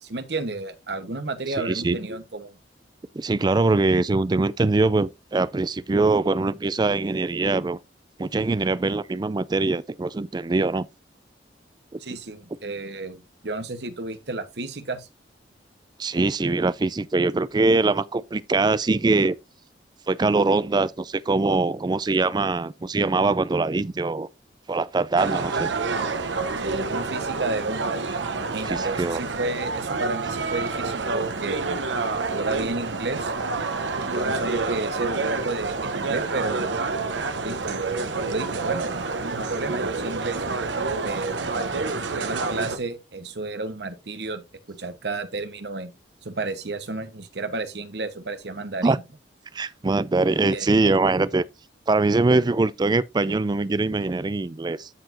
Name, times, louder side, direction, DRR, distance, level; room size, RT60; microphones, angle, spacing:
voice 1, 0.0-2.6 12.0-15.1 26.6-31.8 32.3-33.3 34.0-36.8 37.4-40.4 41.0-45.9 46.2-49.0 50.5-50.7, right 3 dB, 65° right, 1.1 m, -32 dB
voice 2, 1.6-2.0 3.1-7.8 8.2-10.9 16.0-19.4 20.1-24.3 24.7-25.7 28.6-29.2 48.8-49.0 49.5-51.4 51.9-54.9, right 3 dB, 25° right, 0.4 m, -22 dB
sound 1, 25.2-42.8, right 3 dB, 90° right, 1.0 m, -28 dB
13.5 x 4.7 x 2.6 m
head